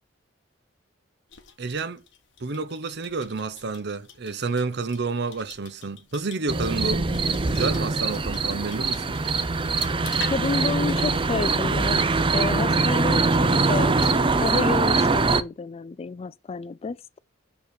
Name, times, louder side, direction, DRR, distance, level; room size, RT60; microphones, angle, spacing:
sound 1, 1.3-14.3, left 7 dB, 65° left, 1.4 m, -47 dB
voice 1, 1.6-2.0 2.4-7.1 7.5-9.2, right 4 dB, 60° right, 0.8 m, -29 dB
sound 2, 6.5-15.4, right 3 dB, 25° right, 0.5 m, -23 dB
voice 2, 10.3-14.0 14.3-17.2, left 4 dB, 30° left, 0.3 m, -30 dB
6.6 x 5.2 x 4.4 m
head